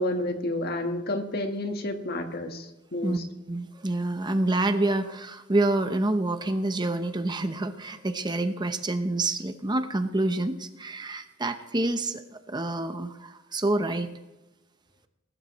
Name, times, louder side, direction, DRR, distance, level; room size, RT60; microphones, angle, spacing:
voice 1, 0.0-3.2, left 1 dB, 55° left, 5 dB, 1.6 m, -30 dB
voice 2, 3.5-12.2 12.5-14.1, right 2 dB, 20° right, 8 dB, 0.8 m, -27 dB
20.5 x 12.0 x 3.1 m, 1.1 s
head